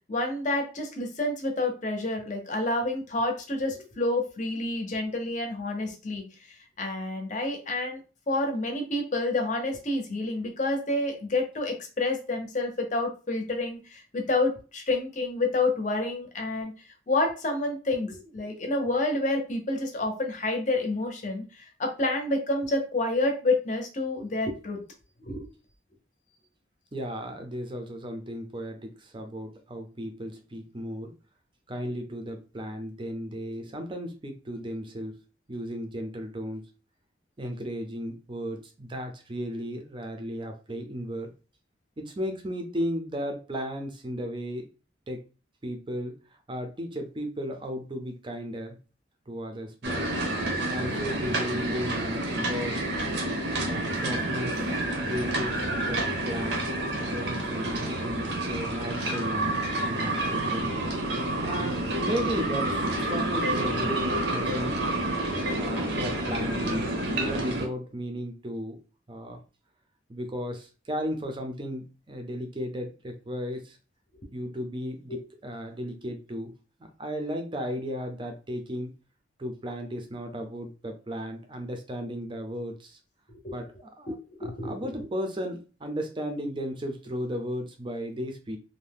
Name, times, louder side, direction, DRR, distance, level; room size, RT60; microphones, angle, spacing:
voice 1, 0.1-8.0 8.3-16.7 17.1-24.8 25.2-25.5 83.4-83.5 84.1-84.7, left 2 dB, 40° left, 3 dB, 0.7 m, -29 dB
voice 2, 26.9-31.1 31.7-35.2 35.5-36.7 37.4-41.3 42.0-44.7 45.1-45.2 45.6-48.8 49.3-50.1 50.7-52.9 53.6-56.7 57.1-60.8 61.4-64.8 65.6-68.8 69.1-69.4 70.1-73.8 74.3-78.9 79.4-83.0 83.5-84.2 84.6-88.6, equal, 25° right, 5 dB, 0.5 m, -35 dB
sound 1, 49.8-67.7, right 1 dB, 65° right, 0.7 m, -29 dB
2.7 x 2.1 x 3.4 m, 0.34 s
head